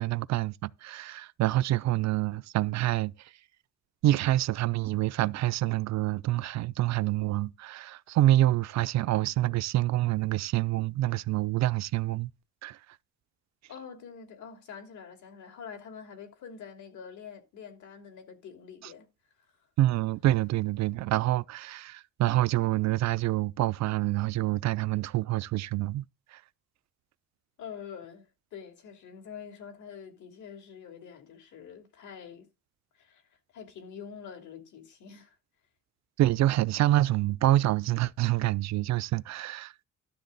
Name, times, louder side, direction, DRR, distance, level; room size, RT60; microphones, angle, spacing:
voice 1, 0.0-3.3 4.0-12.3 12.6-12.8 19.8-26.1 26.3-26.4 36.2-39.7, right 15 dB, 70° right, 0.5 m, -27 dB
voice 2, 13.7-19.1 27.6-32.5 32.9-35.4, left 7 dB, 80° left, 2.9 m, -46 dB
12.0 x 7.4 x 4.0 m
cardioid pair, 130°, 29 cm